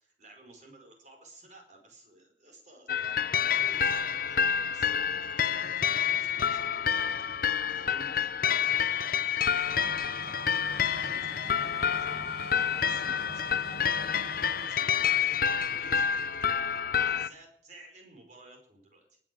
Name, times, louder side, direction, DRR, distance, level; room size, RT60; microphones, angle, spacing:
voice 1, 0.0-7.1 7.7-12.1 12.5-19.2, right 2 dB, 40° right, 3 dB, 5.0 m, -55 dB
sound 1, 2.9-17.3, left 8 dB, 50° left, 0.7 m, -28 dB
sound 2, 9.6-14.7, right 2 dB, 60° right, 2.2 m, -45 dB
19.5 x 7.4 x 7.6 m, 0.63 s
head